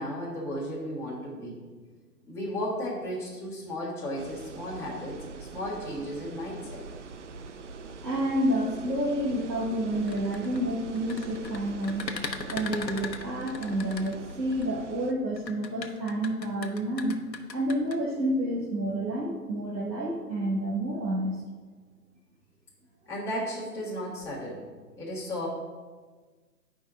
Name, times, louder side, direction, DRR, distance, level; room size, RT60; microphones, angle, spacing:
voice 1, 0.0-1.6 2.3-6.8 23.0-24.6 25.0-25.5, equal, 5° left, -9 dB, 1.6 m, -34 dB
sound 1, 4.2-15.1, right 4 dB, 45° right, 0.6 m, -43 dB
voice 2, 8.0-12.1 12.5-17.2 17.5-21.3, right 1 dB, 90° right, -5 dB, 1.8 m, -29 dB
sound 2, 10.0-14.6 15.4-18.0, left 4 dB, 90° left, 0.9 m, -38 dB
9.3 x 5.2 x 3.6 m, 1.4 s
figure-of-eight pair, 140°, 49 cm